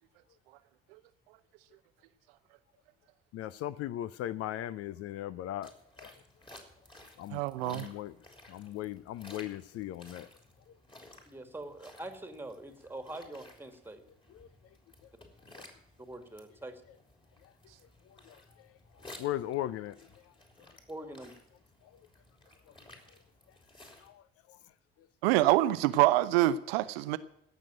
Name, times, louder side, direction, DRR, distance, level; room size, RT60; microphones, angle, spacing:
voice 1, 3.3-5.7 6.0-6.1 7.2-8.1 8.5-10.3 14.3-14.5 18.3-18.4 19.2-20.0 24.0-24.2, left 13 dB, 50° left, 0.5 m, -37 dB
sound 1, 5.6-24.1, left 1 dB, 15° left, 3.3 m, -56 dB
voice 2, 7.3-7.9 25.2-27.2, right 15 dB, 75° right, 0.6 m, -25 dB
voice 3, 11.3-14.0 16.1-16.8 20.9-21.3, right 2 dB, 5° right, 1.9 m, -44 dB
16.5 x 6.3 x 9.0 m
figure-of-eight pair, 50°, 30 cm